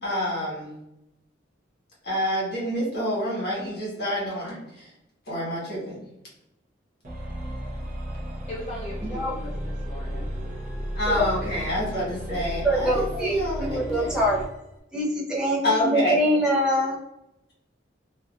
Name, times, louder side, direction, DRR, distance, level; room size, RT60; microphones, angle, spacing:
voice 1, 0.0-0.7 2.0-4.9 5.3-6.0 10.9-14.1 15.6-16.2, equal, 60° left, -5 dB, 1.3 m, -27 dB
sound 1, 7.0-14.5, equal, 45° right, 0.6 m, -33 dB
voice 2, 8.5-10.3 11.1-11.6, left 1 dB, 35° left, -2 dB, 0.4 m, -39 dB
voice 3, 12.6-14.4 14.9-17.0, equal, 5° right, -5 dB, 0.7 m, -24 dB
2.7 x 2.3 x 2.3 m, 0.87 s
head